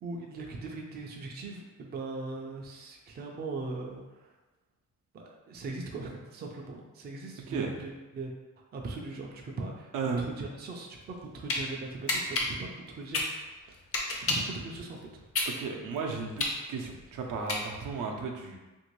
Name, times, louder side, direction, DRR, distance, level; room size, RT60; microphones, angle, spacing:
voice 1, 0.0-4.0 5.1-8.3 8.7-13.8 14.3-15.2, right 3 dB, 35° right, 0 dB, 0.4 m, -40 dB
voice 2, 9.9-10.3 15.6-18.6, right 4 dB, 80° right, 1 dB, 0.6 m, -34 dB
sound 1, 11.0-11.6 12.1-14.6 15.0-18.0, left 2 dB, 50° left, 0.6 m, -31 dB
2.9 x 2.6 x 3.0 m, 1.1 s
cardioid pair, 140°, 31 cm